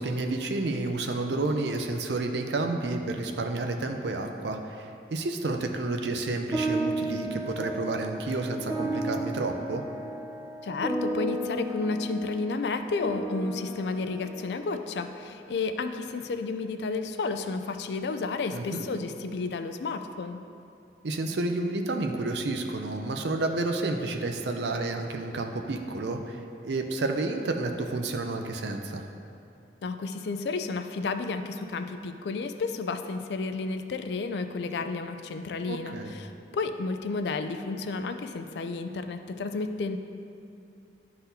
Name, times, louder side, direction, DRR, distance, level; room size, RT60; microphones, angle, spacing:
voice 1, 0.0-9.8 18.5-18.8 21.0-29.0 35.7-36.1, right 2 dB, 70° right, 4 dB, 0.5 m, -30 dB
sound 1, 6.5-15.2, right 1 dB, 20° right, 0.7 m, -34 dB
voice 2, 10.6-20.4 29.8-40.0, left 3 dB, 65° left, 8 dB, 0.4 m, -32 dB
11.5 x 4.0 x 2.7 m, 2.7 s
head